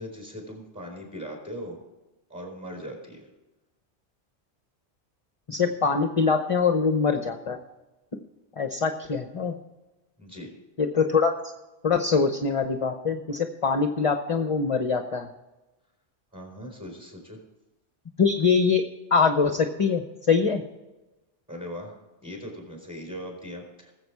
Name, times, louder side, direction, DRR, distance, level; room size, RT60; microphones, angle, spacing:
voice 1, 0.0-1.8 2.3-3.3 10.2-10.5 16.3-17.4 21.5-21.9 22.2-23.9, equal, 5° right, 1 dB, 4.0 m, -39 dB
voice 2, 5.5-7.6 8.6-9.5 10.8-11.3 11.8-15.3 18.2-18.8 19.1-20.6, left 5 dB, 35° left, 7 dB, 0.7 m, -23 dB
19.5 x 7.7 x 4.7 m, 1.1 s
omnidirectional pair, 1.2 m